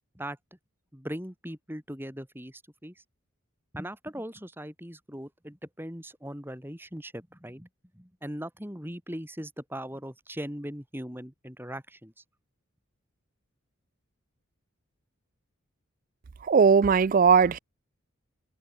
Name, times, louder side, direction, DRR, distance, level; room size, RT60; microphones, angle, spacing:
voice 1, 0.9-3.0 3.7-7.7 7.9-12.2, equal, 10° right, 5.2 m, -39 dB
voice 2, 16.4-17.6, right 6 dB, 40° right, 0.3 m, -19 dB
head